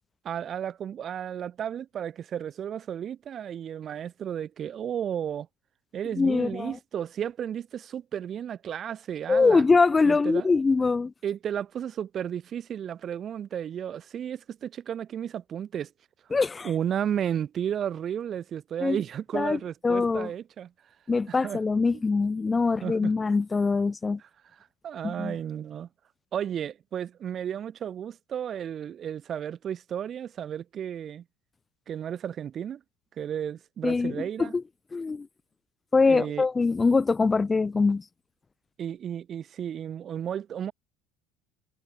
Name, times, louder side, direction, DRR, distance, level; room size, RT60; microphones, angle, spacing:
voice 1, 0.2-5.5 5.9-9.7 10.0-10.5 11.2-15.9 16.6-20.7 21.3-21.6 22.8-23.1 24.8-25.9 26.3-31.2 31.9-32.8 33.2-34.5 36.1-36.5 38.8-40.7, right 9 dB, 40° right, 4.2 m, -33 dB
voice 2, 6.2-6.8 9.3-11.1 16.3-16.7 18.8-19.0 19.3-20.3 21.1-24.2 25.0-25.3 33.8-34.6 34.9-35.3 35.9-38.0, left 4 dB, 20° left, 1.4 m, -23 dB
figure-of-eight pair, 65°, 0 cm